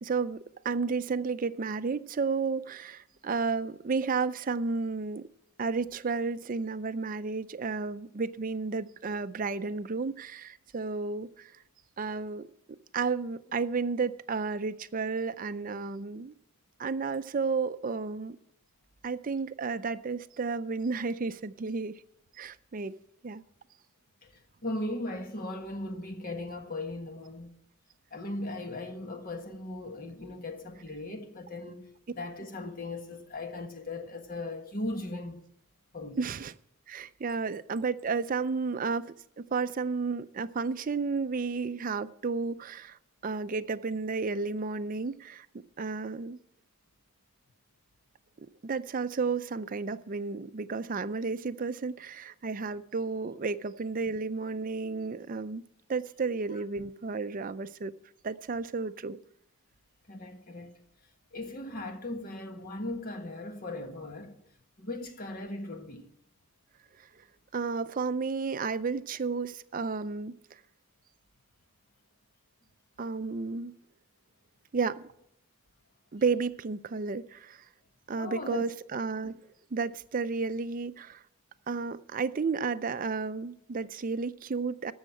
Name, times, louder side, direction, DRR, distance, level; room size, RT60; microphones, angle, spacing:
voice 1, 0.0-5.3 5.6-11.5 12.0-16.3 16.8-18.4 19.0-22.0 22.3-23.0 23.2-23.4 36.2-36.5 36.9-46.4 48.4-55.6 55.9-57.9 58.2-59.2 67.0-67.1 67.5-70.6 73.0-73.7 74.7-75.0 76.1-77.7 78.1-79.4 79.7-81.2 81.7-84.9, right 4 dB, 40° right, 0.4 m, -32 dB
voice 2, 24.2-27.5 28.1-35.4 35.9-36.2 56.5-56.6 60.1-60.7 61.3-64.3 64.8-66.0 78.2-78.7 79.2-79.3, left 2 dB, 40° left, 1.5 m, -38 dB
14.0 x 6.4 x 8.6 m
head